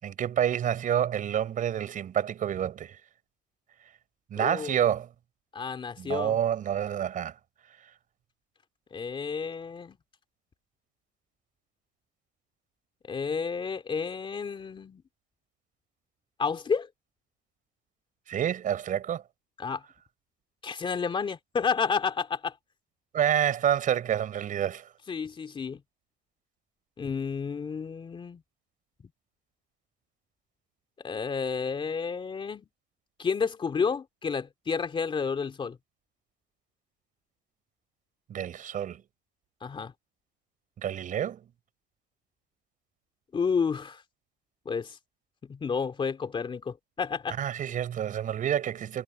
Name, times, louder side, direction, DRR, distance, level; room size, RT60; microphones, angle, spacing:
voice 1, 0.0-3.0 4.3-5.1 6.0-7.3 18.3-19.2 23.1-24.9 38.3-39.0 40.8-41.4 47.4-49.0, right 10 dB, 40° right, 5.6 m, -28 dB
voice 2, 4.4-4.8 5.5-6.4 8.9-10.0 13.1-15.0 16.4-16.9 19.6-19.8 20.6-22.5 25.1-25.8 27.0-28.4 31.0-32.6 33.2-35.8 39.6-39.9 43.3-44.0 44.6-45.0 45.5-47.4, left 5 dB, 25° left, 2.7 m, -31 dB
cardioid pair, 130°, 21 cm